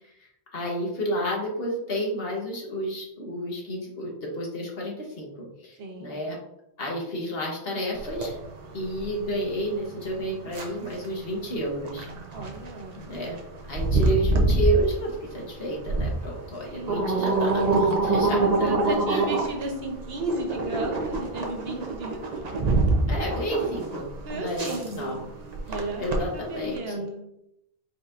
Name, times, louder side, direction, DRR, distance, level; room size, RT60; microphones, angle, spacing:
voice 1, 0.2-5.3 5.6-6.4 6.8-8.4 8.6-12.1 12.9-13.4 13.7-19.2 23.1-24.1 24.3-25.2 26.0-26.8, equal, 70° left, -1 dB, 1.4 m, -31 dB
voice 2, 5.8-6.2 12.3-13.0 16.6-17.0 18.3-22.8 24.2-25.3 25.7-27.2, right 1 dB, 75° right, 3 dB, 1.1 m, -34 dB
sound 1, 8.0-26.8, right 2 dB, 45° right, 0.8 m, -27 dB
4.9 x 4.1 x 2.5 m, 0.81 s
omnidirectional pair, 1.0 m